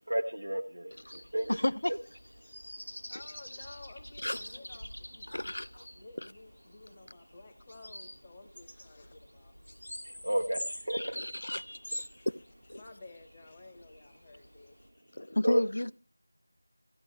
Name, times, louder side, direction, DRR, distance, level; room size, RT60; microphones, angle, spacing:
voice 1, 0.1-1.6 10.0-11.0 15.4-15.6, right 1 dB, 75° right, 0.9 m, -32 dB
sound 1, 1.0-14.9, equal, 90° left, 1.4 m, -46 dB
voice 2, 1.5-1.9 3.1-3.2 4.2-4.4 5.3-5.8 6.2-6.3 10.9-12.3 12.7-12.8 15.1-15.9, left 1 dB, 55° left, 0.4 m, -33 dB
voice 3, 3.1-9.5 11.9-12.3 12.7-15.3, left 2 dB, 10° left, 0.8 m, -54 dB
14.5 x 9.4 x 3.1 m
figure-of-eight pair, 175°, 0 cm